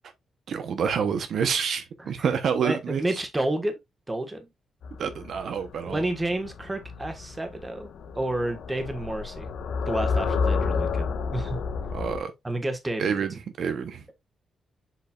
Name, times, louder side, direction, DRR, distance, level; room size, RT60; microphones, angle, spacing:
voice 1, 0.5-3.2 5.0-6.0 11.9-12.3 13.0-14.0, right 6 dB, 65° right, 0.9 m, -28 dB
voice 2, 2.5-3.8 4.1-4.5 5.9-7.9 8.1-9.5 9.8-11.6 12.4-13.0, right 1 dB, 15° right, 1.5 m, -30 dB
sound 1, 4.8-12.2, left 5 dB, 75° left, 1.2 m, -30 dB
7.4 x 5.4 x 2.4 m
cardioid pair, 130°, 0 cm